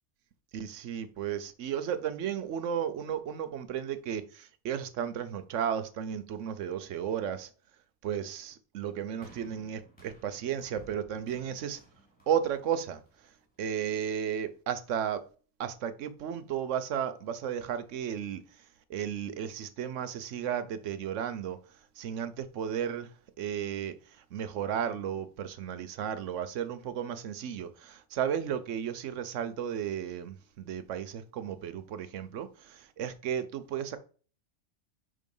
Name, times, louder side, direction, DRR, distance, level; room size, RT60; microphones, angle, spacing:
voice 1, 0.5-7.5 8.0-11.8 12.3-13.0 13.6-15.2 15.6-18.4 18.9-21.6 22.0-23.1 23.4-23.9 24.3-34.0, right 9 dB, 85° right, 1.1 m, -34 dB
sound 1, 9.2-13.6 14.4-14.5, right 3 dB, 5° left, 2.3 m, -56 dB
5.6 x 3.8 x 5.3 m
omnidirectional pair, 1.2 m